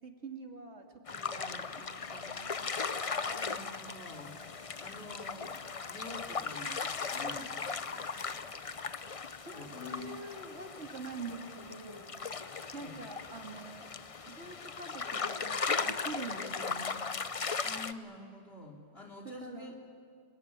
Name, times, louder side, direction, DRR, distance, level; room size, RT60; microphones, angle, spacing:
voice 1, 0.0-2.7 9.5-12.2 12.7-13.8 14.3-17.0 19.4-19.7, right 3 dB, 85° right, 4 dB, 2.7 m, -45 dB
sound 1, 1.1-17.9, left 5 dB, 35° left, 0.8 m, -38 dB
voice 2, 3.1-4.3 4.8-5.5 5.9-8.5 9.5-10.3 12.7-13.1 17.6-19.9, left 2 dB, 65° left, 1 dB, 3.6 m, -47 dB
sound 2, 3.9-9.5, left 3 dB, ahead, 3.5 m, -59 dB
25.5 x 22.5 x 9.6 m, 2.3 s
omnidirectional pair, 1.1 m